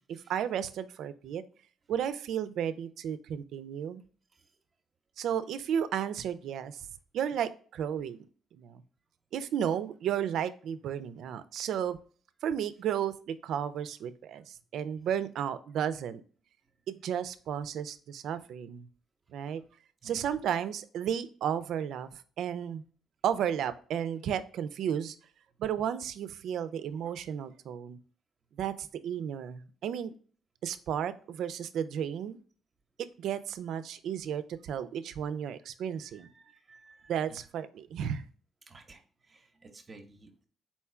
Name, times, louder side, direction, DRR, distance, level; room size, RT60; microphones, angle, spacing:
voice 1, 0.0-1.4 1.9-4.0 5.2-6.9 7.1-8.2 8.6-8.8 9.3-12.0 12.4-16.2 16.9-18.9 19.3-19.6 20.0-22.8 23.2-25.2 25.6-28.0 28.6-30.1 30.6-32.4 33.2-36.3 37.1-38.3, right 9 dB, 75° right, 13 dB, 0.4 m, -33 dB
voice 2, 36.4-37.1 38.7-39.0 39.3-40.4, right 3 dB, 35° right, 5 dB, 0.8 m, -54 dB
4.3 x 2.3 x 4.3 m, 0.41 s
cardioid pair, 90°, 0 cm